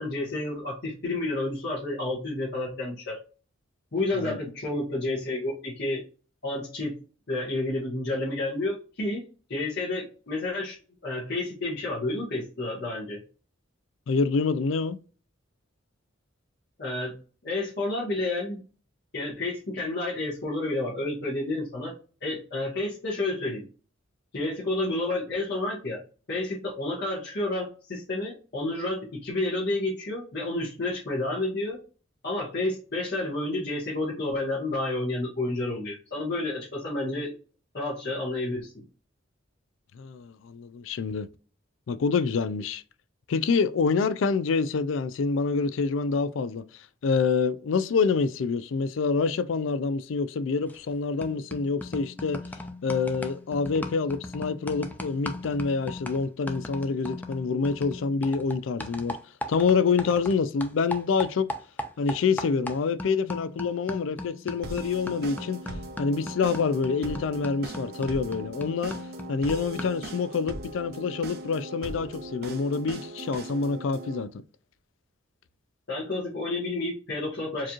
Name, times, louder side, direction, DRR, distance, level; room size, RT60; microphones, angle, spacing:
voice 1, 0.0-3.2 3.9-6.0 6.4-6.9 7.3-9.2 9.5-10.8 11.0-13.2 16.8-17.1 17.4-18.6 19.1-21.9 22.2-23.6 24.3-26.0 26.3-31.8 32.2-37.3 37.7-38.7 75.9-77.7, left 2 dB, 60° left, 1.5 m, -30 dB
voice 2, 14.1-15.0 40.0-41.3 41.9-42.8 43.3-46.6 47.0-52.4 52.8-59.2 59.5-61.5 62.0-65.6 66.0-69.0 69.3-74.3, left 5 dB, 75° left, 0.4 m, -26 dB
sound 1, 50.7-50.9 51.2-60.4 60.6-70.1, left 1 dB, 10° left, 0.5 m, -38 dB
sound 2, 64.6-74.2, right 1 dB, 55° right, 0.7 m, -40 dB
4.7 x 3.0 x 2.4 m
head